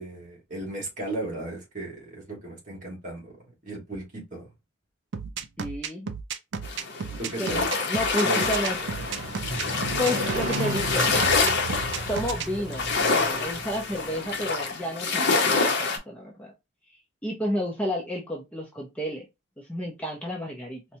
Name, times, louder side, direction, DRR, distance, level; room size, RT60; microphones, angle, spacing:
voice 1, 0.0-3.4 3.6-4.5 7.2-7.7 8.2-8.5, right 2 dB, 40° right, 1.5 m, -35 dB
sound 1, 5.1-12.5, right 6 dB, 60° right, 0.4 m, -33 dB
voice 2, 5.6-6.1 7.4-8.8 10.0-11.1 12.1-16.5 17.2-19.3 19.6-20.8, left 1 dB, 5° left, 0.6 m, -31 dB
sound 2, 6.6-16.0, left 4 dB, 55° left, 0.8 m, -27 dB
Motorcycle, 8.5-14.4, right 1 dB, 80° right, 0.8 m, -34 dB
4.2 x 2.2 x 2.7 m
head